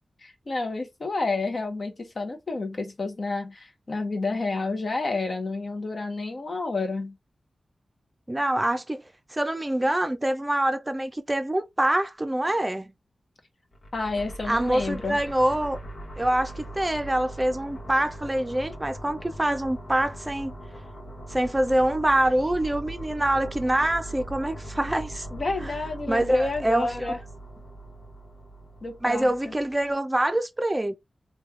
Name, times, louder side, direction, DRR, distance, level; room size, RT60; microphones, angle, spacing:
voice 1, 0.2-7.2 13.9-15.2 25.3-27.2 28.8-29.5, left 3 dB, 45° left, 0.8 m, -30 dB
voice 2, 8.3-9.0 9.3-12.9 14.5-15.8 16.2-20.5 21.3-25.3 25.6-25.7 26.1-26.9 29.0-30.9, right 1 dB, 15° right, 0.6 m, -25 dB
sound 1, 13.7-29.9, right 1 dB, 75° left, 1.2 m, -40 dB
3.2 x 2.3 x 3.2 m
wide cardioid pair, 105°, 0 cm